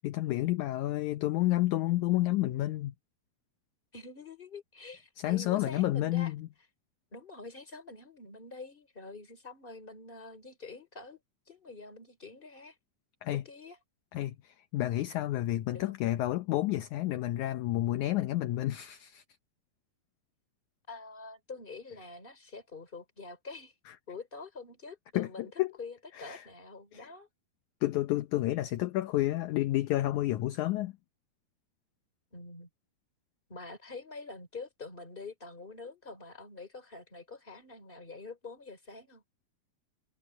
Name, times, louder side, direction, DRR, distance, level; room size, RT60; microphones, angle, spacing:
voice 1, 0.0-2.9 5.2-6.5 13.2-13.4 14.1-19.2 25.2-25.7 26.2-26.4 26.9-27.1 27.8-30.9, left 15 dB, 75° left, 1.8 m, -30 dB
voice 2, 3.9-6.3 7.1-11.2 11.5-12.8 13.3-13.8 15.7-16.0 20.9-23.7 24.1-25.5 25.8-27.3 32.3-32.7 33.5-39.2, left 3 dB, 15° left, 3.3 m, -46 dB
omnidirectional pair, 4.2 m